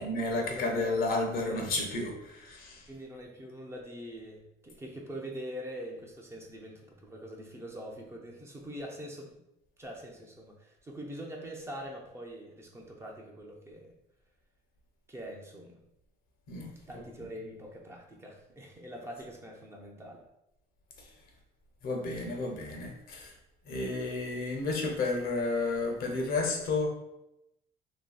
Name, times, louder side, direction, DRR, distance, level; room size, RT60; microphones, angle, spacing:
voice 1, 0.0-2.9 16.5-17.3 21.0-21.1 21.8-23.3 23.6-26.9, left 3 dB, 60° left, 2 dB, 0.6 m, -32 dB
voice 2, 0.5-1.0 1.5-1.6 2.9-9.4 9.8-13.9 15.1-15.8 16.9-20.2 22.2-22.3, equal, 15° right, -1 dB, 0.4 m, -44 dB
2.6 x 2.6 x 2.2 m, 0.86 s
cardioid pair, 110°, 17 cm